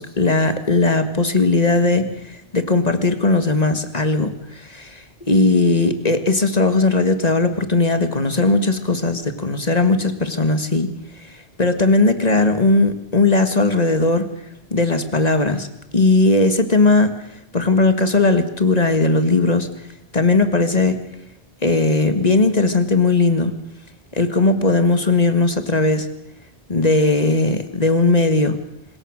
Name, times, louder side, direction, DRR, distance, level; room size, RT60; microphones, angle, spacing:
voice 1, 0.0-10.9 11.2-14.3 14.7-15.7 15.9-17.1 17.5-19.7 20.1-21.0 21.6-23.5 24.1-26.1 26.7-28.6, left 3 dB, 35° left, 10 dB, 1.9 m, -18 dB
25.0 x 21.5 x 6.5 m, 0.84 s
omnidirectional pair, 1.1 m